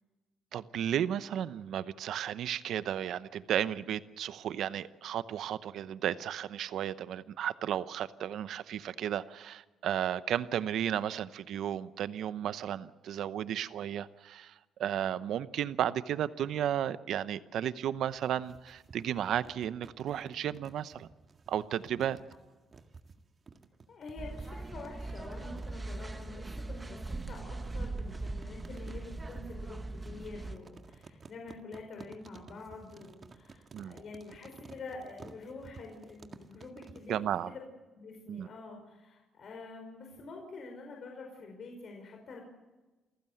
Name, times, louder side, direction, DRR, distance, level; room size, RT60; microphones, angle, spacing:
voice 1, 0.5-14.5 14.8-21.1 21.5-22.2 33.7-33.9 37.1-37.5 38.3-38.5, right 10 dB, 75° right, 14 dB, 0.8 m, -34 dB
sound 1, 18.1-37.2, right 4 dB, 40° right, 1.9 m, -54 dB
voice 2, 23.9-37.7 38.0-42.4, left 3 dB, 55° left, 2 dB, 5.0 m, -47 dB
sound 2, 24.2-30.6, right 2 dB, 20° right, 1.3 m, -40 dB
28.5 x 15.0 x 7.9 m, 1.2 s
cardioid pair, 90°, 0 cm